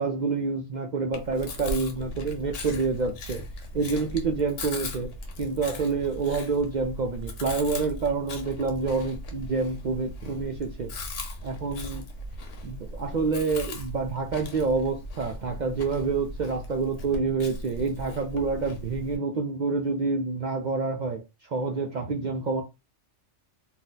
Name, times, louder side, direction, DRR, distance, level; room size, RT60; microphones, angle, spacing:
voice 1, 0.0-3.4 3.7-5.1 5.4-10.9 11.4-12.1 12.6-22.6, right 4 dB, 60° right, 0.4 m, -28 dB
Chewing mastication, 1.1-19.2, left 1 dB, 80° left, 1.1 m, -38 dB
2.7 x 2.1 x 3.9 m
omnidirectional pair, 1.2 m